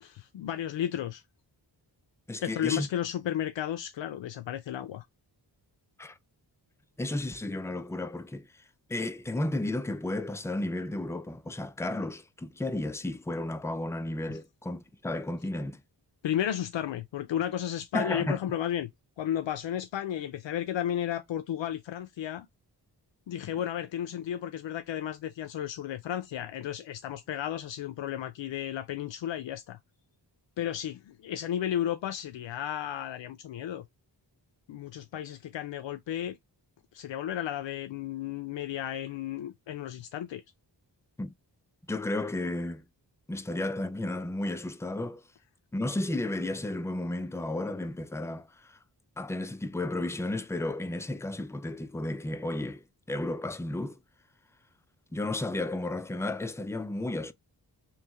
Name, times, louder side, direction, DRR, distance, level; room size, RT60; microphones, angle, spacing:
voice 1, 0.0-1.2 2.4-5.1 14.3-14.4 16.2-18.9 19.2-22.5 23.3-29.8 30.6-33.8 34.7-36.4 36.9-40.4, left 10 dB, 80° left, 0.5 m, -33 dB
voice 2, 2.3-2.9 6.0-6.2 7.0-8.5 8.9-15.8 17.9-18.4 41.2-41.3 41.9-42.8 43.3-45.2 45.7-48.8 49.2-52.8 53.1-54.0 55.1-57.3, left 1 dB, 5° left, 0.4 m, -33 dB
3.2 x 3.0 x 3.4 m
cardioid pair, 70°, 44 cm